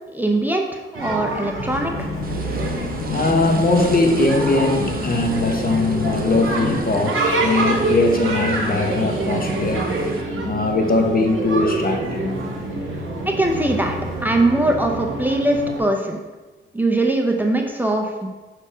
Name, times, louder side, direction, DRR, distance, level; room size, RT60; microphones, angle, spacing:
voice 1, 0.1-2.1 13.2-16.2 16.7-18.3, right 2 dB, 10° right, 1 dB, 0.7 m, -21 dB
sound 1, 0.9-15.8, right 2 dB, 65° right, 1.8 m, -26 dB
sound 2, 1.6-6.8, left 5 dB, 80° left, 0.8 m, -30 dB
sound 3, 2.2-10.2, right 3 dB, 45° right, 0.8 m, -35 dB
voice 2, 3.1-9.9 10.5-12.4, left 2 dB, 45° left, 4 dB, 0.9 m, -20 dB
6.2 x 4.5 x 5.0 m, 1.2 s
cardioid pair, 105°, 21 cm